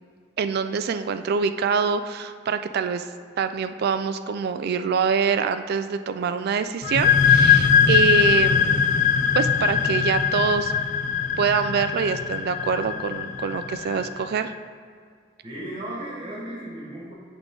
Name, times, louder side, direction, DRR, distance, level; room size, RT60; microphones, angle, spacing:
voice 1, 0.4-3.1 3.4-8.8 9.3-10.7 11.4-14.5, right 6 dB, 50° right, 10 dB, 0.3 m, -25 dB
sound 1, 6.8-14.3, left 7 dB, 40° left, 0.3 m, -21 dB
voice 2, 15.4-17.1, right 1 dB, 25° right, -5 dB, 1.5 m, -35 dB
10.5 x 3.7 x 3.8 m, 2.1 s
head